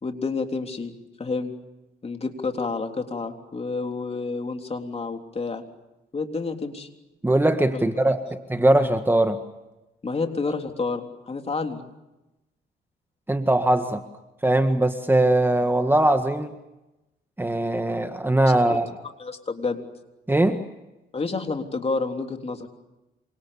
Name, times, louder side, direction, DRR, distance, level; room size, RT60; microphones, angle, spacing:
voice 1, 0.0-0.9 1.2-1.5 2.0-5.6 6.1-6.9 7.7-7.8 8.3-8.4 10.0-11.9 18.5-18.8 19.2-19.8 21.1-22.7, left 4 dB, 30° left, 5 dB, 3.6 m, -29 dB
voice 2, 7.2-9.4 13.3-14.0 14.4-16.5 17.4-18.9 20.3-20.6, right 1 dB, 10° right, 7 dB, 1.7 m, -21 dB
27.5 x 26.0 x 7.2 m, 0.98 s
cardioid pair, 90°, 20 cm